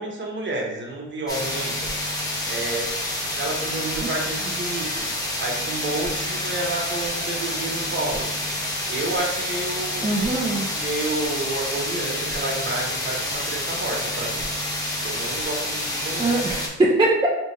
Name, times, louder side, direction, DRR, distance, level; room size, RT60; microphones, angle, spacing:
voice 1, 0.0-1.9 2.5-2.9 3.4-5.1 5.4-8.3 8.9-10.0 10.7-14.4 15.0-16.3, right 2 dB, 40° right, -1 dB, 1.0 m, -30 dB
sound 1, 1.3-16.7, left 1 dB, 10° left, 0.9 m, -28 dB
voice 2, 10.0-10.7 16.2-17.3, right 2 dB, 15° right, -3 dB, 0.5 m, -21 dB
3.3 x 3.3 x 2.7 m, 0.98 s
cardioid pair, 90°, 30 cm